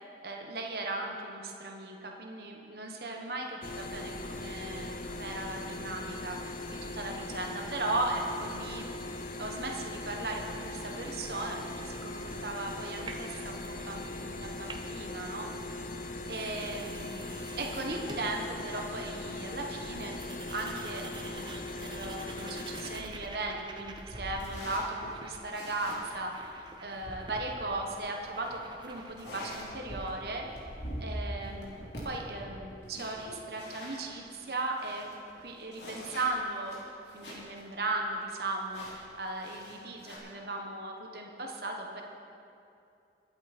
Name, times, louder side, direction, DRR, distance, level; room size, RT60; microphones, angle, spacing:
voice 1, 0.2-9.0 9.4-15.8 16.3-20.2 20.5-30.4 31.0-35.1 35.4-36.8 37.1-42.0, right 2 dB, 65° right, 1 dB, 1.2 m, -37 dB
sound 1, 3.6-23.0, left 2 dB, 50° left, 0.8 m, -40 dB
sound 2, 13.1-14.3 14.6-15.1 15.9-16.0 16.2-19.1 19.5-19.6 19.8-30.1, right 3 dB, 25° right, 0.7 m, -49 dB
sound 3, 22.9-34.1 34.5-34.6 34.8-37.6 37.9-38.0 38.7-40.2, equal, 80° left, 3.2 m, -44 dB
21.5 x 8.6 x 4.3 m, 2.6 s
head